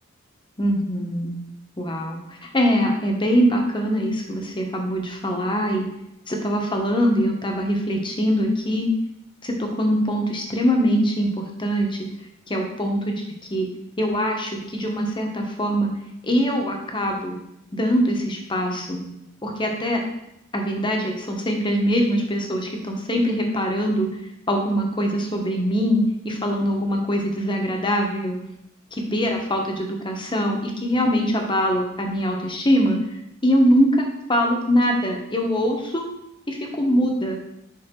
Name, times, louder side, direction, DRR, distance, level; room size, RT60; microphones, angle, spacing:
voice 1, 0.6-1.3 1.8-5.9 6.3-8.9 9.4-12.0 12.5-13.1 13.5-13.7 14.0-15.9 16.2-17.4 17.7-19.0 19.4-20.0 20.5-24.1 24.5-28.3 29.1-33.0 33.4-33.9 34.3-36.0 36.5-37.4, equal, 25° left, 1 dB, 1.1 m, -22 dB
7.9 x 5.3 x 3.8 m, 0.82 s
head